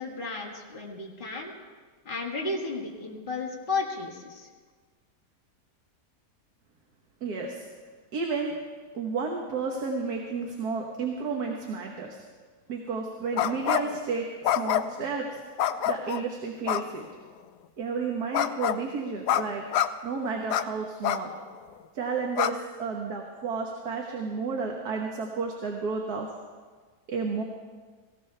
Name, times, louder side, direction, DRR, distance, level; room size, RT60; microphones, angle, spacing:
voice 1, 0.0-1.5 2.1-4.5, left 3 dB, 30° left, -2 dB, 1.9 m, -33 dB
voice 2, 7.2-7.6 8.1-8.6 8.9-12.2 12.7-15.4 15.9-17.1 17.8-19.6 20.0-21.3 21.9-26.3 27.1-27.4, right 4 dB, 70° right, 1 dB, 1.7 m, -32 dB
sound 1, 13.4-14.0 14.4-15.0 15.6-16.2 16.7-16.8 18.3-18.8 19.3-19.4 19.7-19.9 20.5-20.6 21.0-21.2 21.7-21.8 22.4-22.5, left 11 dB, 85° left, 1.2 m, -26 dB
18.5 x 16.5 x 3.3 m, 1.5 s
omnidirectional pair, 1.7 m